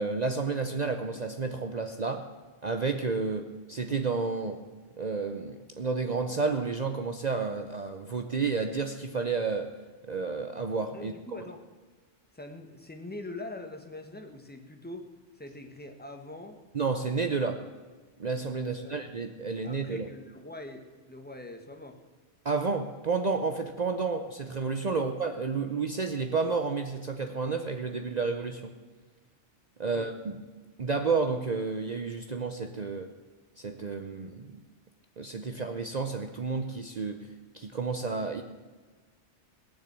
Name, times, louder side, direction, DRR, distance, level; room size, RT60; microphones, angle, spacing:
voice 1, 0.0-2.3 2.6-4.6 5.0-9.7 10.1-11.1 16.7-17.6 18.2-20.1 22.4-28.7 29.8-30.4 30.8-33.1 33.6-34.6 35.2-37.3 37.5-38.4, right 4 dB, 40° right, 6 dB, 0.7 m, -31 dB
voice 2, 10.9-11.6 12.3-15.1 15.3-16.6 18.7-19.0 19.6-22.0 24.8-25.1 29.8-30.1, left 2 dB, 10° left, 5 dB, 1.2 m, -43 dB
18.0 x 6.9 x 8.1 m, 1.4 s
omnidirectional pair, 1.2 m